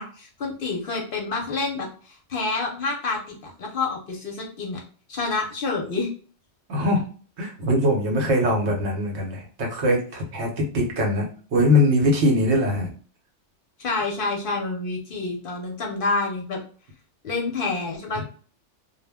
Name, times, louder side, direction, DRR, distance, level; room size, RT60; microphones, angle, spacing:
voice 1, 0.0-4.8 5.1-6.1 13.8-16.6 17.2-18.2, left 3 dB, 55° left, 0 dB, 0.7 m, -28 dB
voice 2, 6.7-7.0 7.4-11.2 11.5-12.9 18.2-18.3, left 1 dB, 70° right, 0 dB, 1.1 m, -22 dB
2.2 x 2.0 x 3.4 m, 0.41 s
omnidirectional pair, 1.2 m